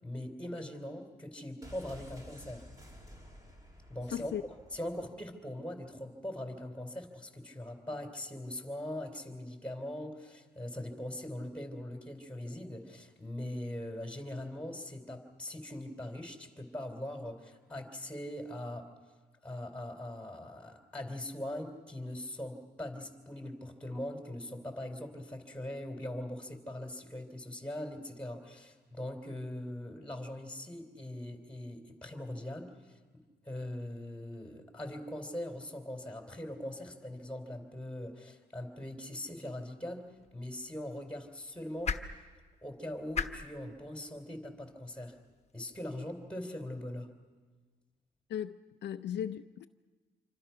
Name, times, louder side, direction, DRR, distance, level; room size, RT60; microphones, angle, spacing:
voice 1, 0.0-2.7 3.9-4.3 4.7-18.9 19.4-33.0 33.4-42.0 42.6-45.2 45.5-47.1, left 1 dB, 5° left, 3.5 m, -41 dB
sound 1, 1.6-5.4 5.6-5.7, left 1 dB, 20° right, 3.1 m, -52 dB
voice 2, 4.1-4.4 48.3-49.7, left 9 dB, 70° left, 0.6 m, -37 dB
sound 2, 40.0-46.3, left 6 dB, 35° left, 1.3 m, -43 dB
27.0 x 25.0 x 5.8 m
cardioid pair, 130°, 18 cm